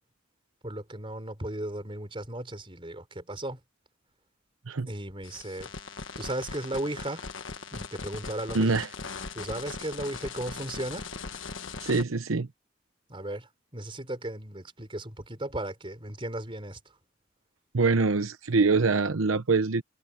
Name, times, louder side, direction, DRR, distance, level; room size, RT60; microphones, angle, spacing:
voice 1, 0.6-3.6 4.9-5.7 6.2-7.3 7.7-8.7 9.3-11.1 13.1-16.8, right 1 dB, 25° right, 4.4 m, -36 dB
sound 1, 5.2-12.0, left 4 dB, 70° left, 1.4 m, -40 dB
voice 2, 8.5-8.9 11.8-12.5 17.7-19.8, right 4 dB, 85° right, 0.8 m, -24 dB
head